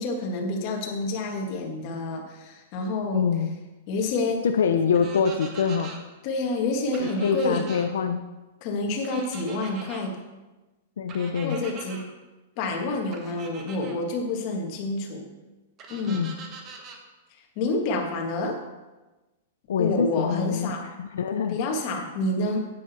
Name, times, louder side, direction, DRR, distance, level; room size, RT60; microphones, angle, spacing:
voice 1, 0.0-3.3 3.9-4.4 6.2-7.7 8.6-10.1 11.4-12.0 12.6-15.3 15.9-16.3 17.5-18.6 19.8-20.9 21.3-22.7, left 2 dB, 40° left, 2 dB, 1.6 m, -28 dB
voice 2, 3.1-3.5 4.5-5.9 7.0-8.2 11.0-11.6 16.1-16.3 19.7-20.7 21.0-21.6 21.9-22.0, left 6 dB, 85° left, 7 dB, 0.6 m, -25 dB
sound 1, 4.9-6.0 6.9-7.9 9.0-10.0 11.1-12.0 13.1-14.0 15.8-17.0, right 4 dB, 25° right, 1.1 m, -43 dB
8.7 x 8.6 x 4.2 m, 1.1 s
supercardioid pair, 160°, 0 cm